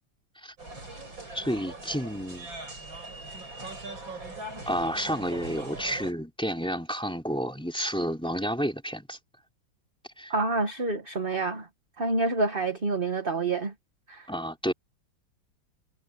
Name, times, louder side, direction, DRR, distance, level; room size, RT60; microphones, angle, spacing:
sound 1, 0.6-6.1, right 2 dB, 75° right, 8.3 m, -41 dB
voice 1, 1.3-2.5 4.7-9.2 10.2-10.3 14.3-14.7, equal, ahead, 3.5 m, -30 dB
voice 2, 10.3-11.7 12.0-13.7 14.1-14.3, right 3 dB, 30° right, 1.5 m, -27 dB
omnidirectional pair, 2.1 m